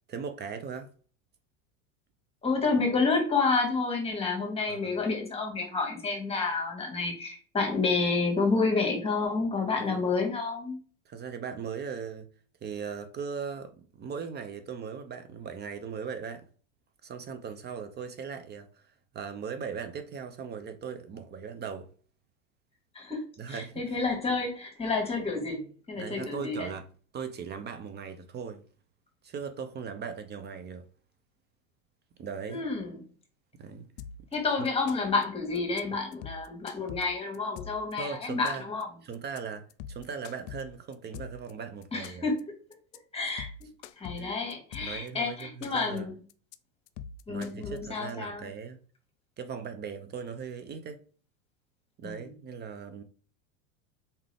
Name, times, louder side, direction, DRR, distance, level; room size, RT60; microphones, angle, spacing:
voice 1, 0.1-0.9 4.7-5.0 9.9-10.0 11.1-12.3 12.6-16.5 17.0-18.8 19.1-21.9 23.4-23.8 26.0-26.9 27.1-28.6 29.2-30.9 32.2-32.6 33.6-33.8 34.6-34.7 38.0-38.6 39.0-42.2 44.2-44.4 44.8-46.1 47.3-48.8 49.4-51.0 52.0-53.0, right 6 dB, 25° right, 0.6 m, -38 dB
voice 2, 2.4-10.8 22.9-26.7 32.5-33.0 34.3-38.9 41.9-42.5 43.1-43.5 44.0-46.2 47.3-48.5 52.0-52.4, left 4 dB, 15° left, 1.9 m, -29 dB
sound 1, 34.0-34.3 34.6-35.2 35.5-35.8 36.1-37.9 38.2-38.8 39.1-39.4 39.7-41.5 41.8-42.4 42.7-43.0 43.3-45.1 45.4-46.0 46.3-46.5 46.9-48.1, left 7 dB, 50° left, 0.5 m, -43 dB
4.2 x 3.6 x 3.4 m
hypercardioid pair, 110°, 39 cm